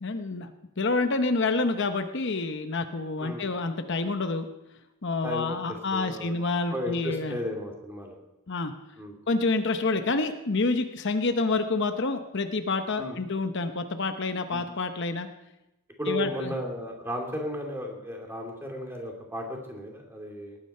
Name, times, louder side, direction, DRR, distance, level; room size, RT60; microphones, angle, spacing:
voice 1, 0.0-4.5 5.0-7.4 8.5-8.7 9.3-15.3 16.1-16.5, left 3 dB, 55° left, 7 dB, 0.8 m, -28 dB
voice 2, 5.2-6.3 6.7-8.2 9.0-9.1 13.0-13.2 14.5-14.7 16.0-20.6, equal, 10° right, 1 dB, 2.5 m, -34 dB
19.0 x 9.8 x 5.5 m, 0.93 s
head